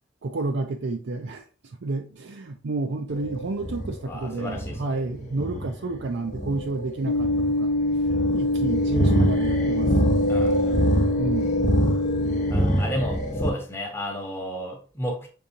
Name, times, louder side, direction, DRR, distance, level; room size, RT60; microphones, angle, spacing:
voice 1, 0.2-7.7 8.3-9.9 11.2-11.6, right 3 dB, 60° right, 0.5 m, -30 dB
sound 1, 3.1-13.5, equal, 40° left, 0.9 m, -26 dB
voice 2, 4.1-5.0 10.3-10.9 12.5-15.3, equal, 10° left, 0.9 m, -33 dB
sound 2, 7.1-12.5, left 1 dB, 80° left, 0.4 m, -25 dB
5.4 x 3.6 x 2.7 m
head